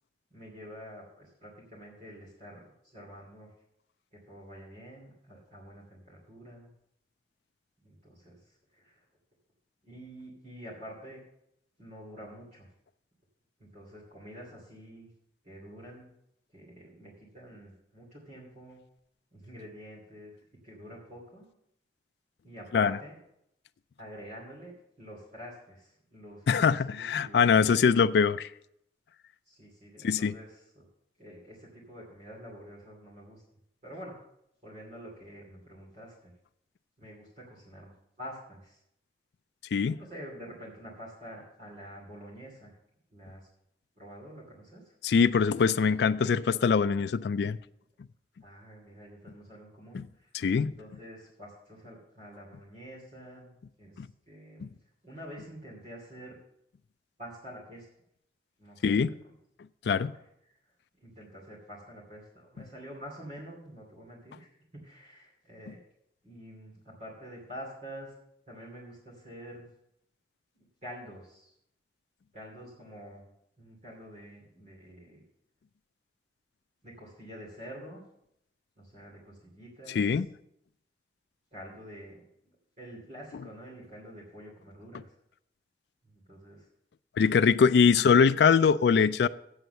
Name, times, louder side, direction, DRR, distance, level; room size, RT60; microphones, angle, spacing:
voice 1, 0.3-3.5 4.1-6.7 7.8-9.1 9.8-11.2 11.8-12.7 13.6-15.1 15.4-16.1 16.5-18.8 19.3-20.3 20.6-21.5 22.4-23.2 24.0-28.0 29.5-30.9 31.2-33.4 33.8-34.2 34.6-36.3 37.0-37.9 38.2-38.8 40.0-42.8 43.1-43.5 44.0-44.9 48.4-50.3 50.8-54.7 55.0-56.4 57.2-57.9 58.6-59.1 59.9-60.1 60.5-60.6 61.0-65.8 66.2-68.1 68.5-69.7 70.5-71.5 72.3-73.3 73.6-75.2 76.8-78.0 78.8-80.1 81.5-85.1 86.0-86.7, equal, 40° right, -4 dB, 2.5 m, -47 dB
voice 2, 26.5-28.5 30.0-30.3 39.7-40.0 45.0-47.6 49.9-50.0 50.3-50.7 54.6-54.7 58.8-59.1 59.9-60.1 79.9-80.3 87.2-89.3, left 6 dB, 70° left, 13 dB, 0.3 m, -23 dB
8.0 x 7.8 x 6.8 m, 0.76 s
head